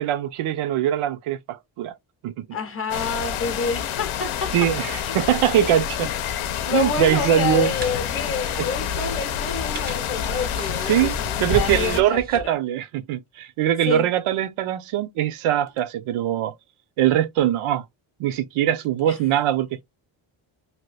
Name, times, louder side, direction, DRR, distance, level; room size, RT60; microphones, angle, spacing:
voice 1, 0.0-1.9 2.2-2.3 4.5-6.1 6.7-7.7 8.6-8.7 10.9-16.5 17.0-17.8 18.2-19.8, right 11 dB, 90° right, 0.6 m, -22 dB
voice 2, 2.5-5.2 5.6-5.7 6.6-12.6 13.8-14.1 19.1-19.2, left 5 dB, 30° left, 0.6 m, -29 dB
sound 1, 2.9-12.0, left 9 dB, 80° left, 0.7 m, -28 dB
sound 2, 7.6-12.5, right 5 dB, 20° right, 0.4 m, -36 dB
2.8 x 2.2 x 3.2 m
wide cardioid pair, 160°, 48 cm